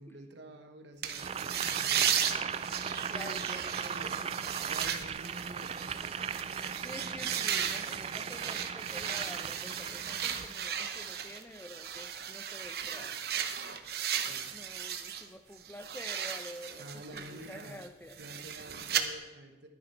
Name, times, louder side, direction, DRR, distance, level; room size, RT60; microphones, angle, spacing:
voice 1, 0.0-2.5 3.0-3.4 3.9-4.2 4.7-6.2 14.1-14.7 16.8-17.9 18.2-19.7, right 1 dB, 80° right, 5 dB, 1.3 m, -49 dB
sound 1, 1.0-15.3 15.6-19.0, right 9 dB, 60° right, 0.8 m, -36 dB
Boiling, 1.1-10.5, right 7 dB, 35° right, 0.3 m, -38 dB
voice 2, 3.1-4.3 6.8-13.1 14.5-18.2, left 1 dB, 10° left, 8 dB, 0.7 m, -48 dB
11.0 x 9.8 x 4.6 m, 1.1 s
head